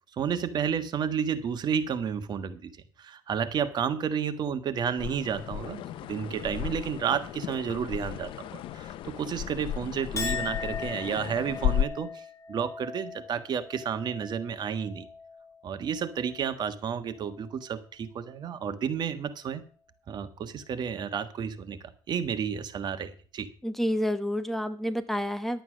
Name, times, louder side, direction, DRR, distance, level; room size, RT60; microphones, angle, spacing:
voice 1, 0.2-2.7 3.0-15.1 15.6-19.6 20.1-21.8 22.1-23.5, right 7 dB, 50° right, 10 dB, 1.5 m, -31 dB
sound 1, 5.0-11.8, left 10 dB, 70° left, 0.7 m, -34 dB
Chink clink, 10.2-16.7 17.1-17.7, left 5 dB, 35° left, 2.4 m, -40 dB
voice 2, 23.6-25.6, equal, 5° left, 10 dB, 1.1 m, -29 dB
11.5 x 8.7 x 6.1 m, 0.42 s
cardioid pair, 115°, 9 cm